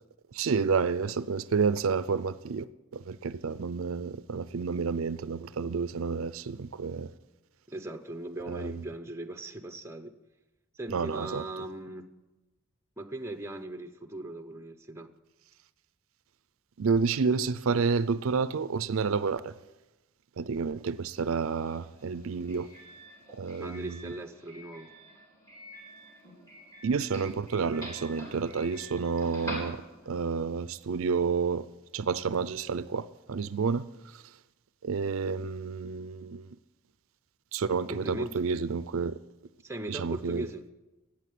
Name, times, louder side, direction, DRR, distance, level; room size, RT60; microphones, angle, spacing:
voice 1, 0.3-7.1 8.5-8.9 10.9-11.5 16.8-19.6 20.4-22.7 23.3-24.1 26.8-31.7 31.9-34.2 34.8-36.5 37.5-39.2 39.9-40.5, right 5 dB, 70° right, 0.5 m, -30 dB
voice 2, 7.7-10.1 10.8-12.1 13.0-15.1 23.6-24.9 37.9-38.3 39.6-40.7, right 2 dB, 10° right, 0.8 m, -39 dB
Doorbell, 21.3-30.3, right 1 dB, 15° left, 3.9 m, -46 dB
14.5 x 8.6 x 9.4 m
head